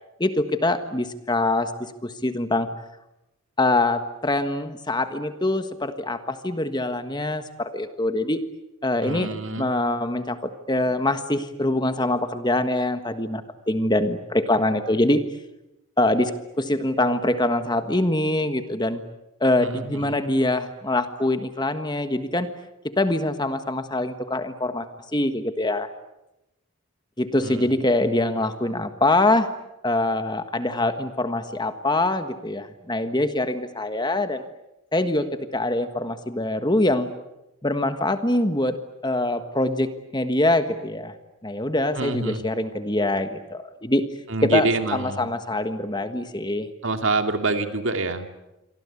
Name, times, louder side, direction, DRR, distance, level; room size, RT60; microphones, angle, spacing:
voice 1, 0.2-2.7 3.6-8.4 8.8-9.3 9.6-15.2 16.0-16.3 16.6-19.0 19.4-22.5 22.9-25.9 27.2-29.5 29.8-34.4 34.9-37.1 37.6-38.8 39.0-41.1 41.4-44.0 44.4-46.7, left 2 dB, 20° left, 9 dB, 1.4 m, -24 dB
voice 2, 9.0-9.7 19.6-20.2 27.4-27.8 42.0-42.4 44.3-45.3 46.8-48.3, right 3 dB, 60° right, 7 dB, 2.5 m, -26 dB
28.0 x 24.5 x 8.4 m, 0.93 s
head